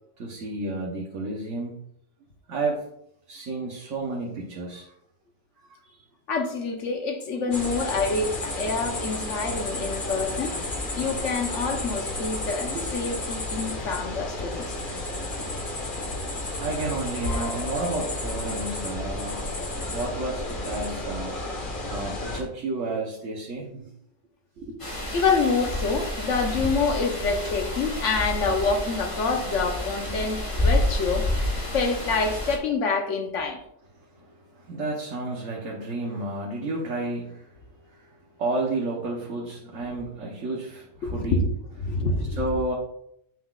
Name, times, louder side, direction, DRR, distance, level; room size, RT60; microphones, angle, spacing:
voice 1, 0.2-1.7 2.5-2.8 3.3-4.9 5.7-5.9 12.7-12.8 16.6-19.5 19.9-21.3 21.9-23.9 24.6-24.8 34.6-37.5 38.4-41.4 42.4-42.7, right 2 dB, 80° right, -3 dB, 1.4 m, -31 dB
voice 2, 6.3-10.5 11.0-14.8 25.1-31.3 31.7-33.6 39.8-39.9 41.0-41.5 41.8-42.7, left 4 dB, 70° left, 4 dB, 1.3 m, -27 dB
sound 1, 7.5-22.4, left 2 dB, 45° left, 1.4 m, -32 dB
sound 2, 24.8-32.6, left 1 dB, 25° left, 1.6 m, -29 dB
8.9 x 5.9 x 2.4 m, 0.76 s
omnidirectional pair, 1.3 m